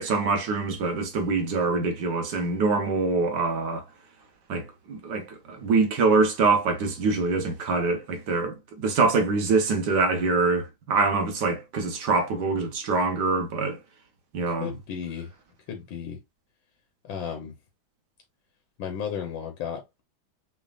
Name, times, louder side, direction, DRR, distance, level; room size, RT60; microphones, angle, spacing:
voice 1, 0.0-3.8 4.5-13.8 14.3-14.7, right 4 dB, 60° right, 1.5 m, -24 dB
voice 2, 14.5-15.3 15.7-16.2 17.0-17.5 18.8-20.0, left 8 dB, 70° left, 1.6 m, -34 dB
6.3 x 3.4 x 2.3 m
omnidirectional pair, 2.2 m